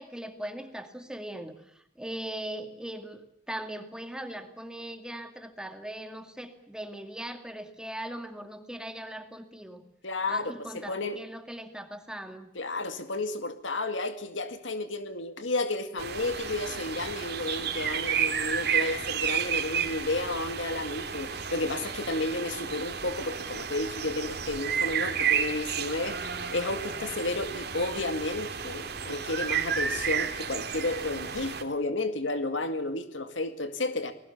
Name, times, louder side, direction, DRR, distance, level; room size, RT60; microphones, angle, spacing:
voice 1, 0.0-9.8 10.3-12.5, right 1 dB, 5° right, 6 dB, 2.3 m, -40 dB
voice 2, 10.0-11.2 12.6-34.1, left 2 dB, 90° left, 8 dB, 2.1 m, -32 dB
sound 1, 16.0-31.6, right 7 dB, 60° right, 2.7 m, -32 dB
29.5 x 20.0 x 7.2 m, 0.72 s
head